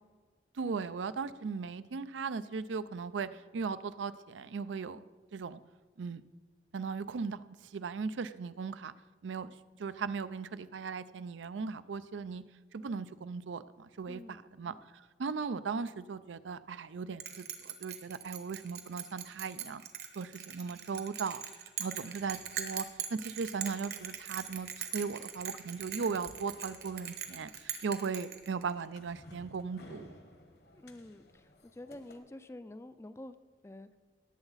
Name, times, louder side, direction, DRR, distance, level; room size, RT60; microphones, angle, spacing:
voice 1, 0.5-5.0 5.3-5.6 6.0-6.2 6.7-8.9 9.2-9.5 9.8-12.4 12.7-19.8 20.2-21.4 21.8-22.9 23.1-30.1, right 5 dB, 90° right, 14 dB, 0.5 m, -38 dB
voice 2, 14.1-14.8 30.7-33.4 33.6-34.0, left 1 dB, 15° left, 11 dB, 0.3 m, -49 dB
Bell, 17.2-28.9, right 9 dB, 60° right, 1.1 m, -41 dB
sound 1, 22.2-32.2, left 1 dB, 60° left, 1.2 m, -58 dB
18.0 x 8.0 x 4.0 m, 1.4 s
head